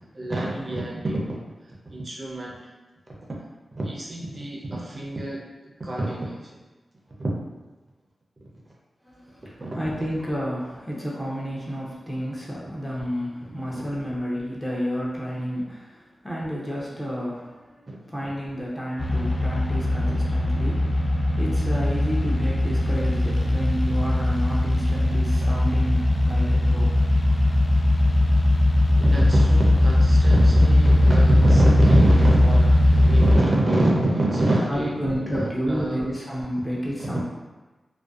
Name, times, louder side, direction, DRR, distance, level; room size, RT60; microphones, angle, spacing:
voice 1, 0.1-1.5 1.9-2.6 3.7-6.6 7.2-7.3 9.4-9.8 13.7-13.8 17.9-18.0 20.5-20.6 28.9-35.0 35.3-36.0 37.0-37.2, right 1 dB, 45° right, -4 dB, 0.4 m, -25 dB
voice 2, 9.0-26.9 34.7-37.2, equal, 10° left, -6 dB, 0.6 m, -31 dB
sound 1, 19.0-33.4, left 1 dB, 50° left, 0.3 m, -19 dB
2.4 x 2.1 x 2.3 m, 1.2 s
wide cardioid pair, 90°, 0 cm